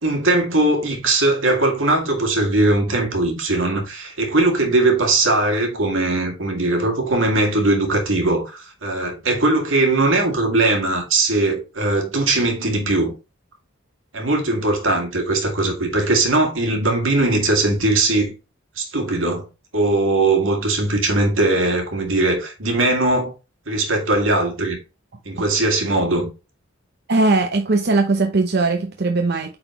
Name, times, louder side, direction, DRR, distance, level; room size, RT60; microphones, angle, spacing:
voice 1, 0.0-13.1 14.1-18.3 18.8-19.5 19.7-23.3 23.7-24.8 25.3-26.3, right 2 dB, 85° right, 2.1 m, -20 dB
voice 2, 27.1-29.6, right 3 dB, 55° right, 0.8 m, -19 dB
8.6 x 4.1 x 2.9 m
head